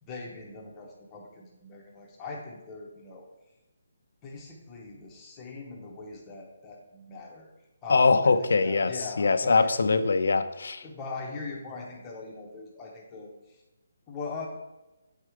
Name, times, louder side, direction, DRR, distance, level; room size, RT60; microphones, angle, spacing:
voice 1, 0.0-3.3 4.2-7.5 7.8-9.7 10.8-13.6 14.1-14.5, left 4 dB, 10° left, -2 dB, 0.9 m, -40 dB
voice 2, 7.9-8.9 9.2-10.8, left 4 dB, 65° left, 10 dB, 0.6 m, -22 dB
8.4 x 4.6 x 4.9 m, 1.0 s
hypercardioid pair, 175°, 0 cm